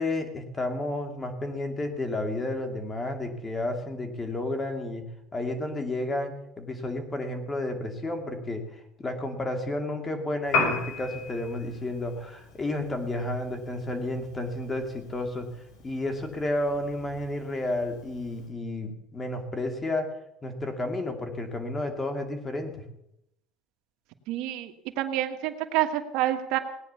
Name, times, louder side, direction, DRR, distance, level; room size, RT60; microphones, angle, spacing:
voice 1, 0.0-5.0 5.3-15.5 15.8-20.1 20.4-22.8, left 1 dB, 20° left, 5 dB, 2.6 m, -31 dB
Piano, 10.4-18.5, left 3 dB, 70° left, 6.0 m, -36 dB
voice 2, 24.3-26.6, right 13 dB, 70° right, 7 dB, 1.4 m, -28 dB
18.0 x 9.8 x 7.0 m, 0.80 s
cardioid pair, 130°, 0 cm